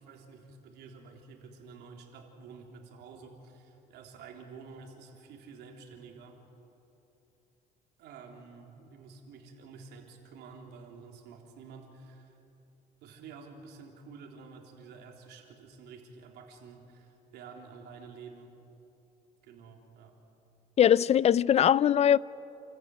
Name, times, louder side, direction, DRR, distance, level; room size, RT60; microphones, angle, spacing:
voice 1, 0.0-6.4 8.0-12.4 13.0-18.5 19.4-20.2, right 5 dB, 80° right, 3.5 m, -50 dB
voice 2, 20.8-22.2, left 9 dB, 40° left, 0.4 m, -21 dB
28.5 x 14.5 x 9.2 m
cardioid pair, 110°, 17 cm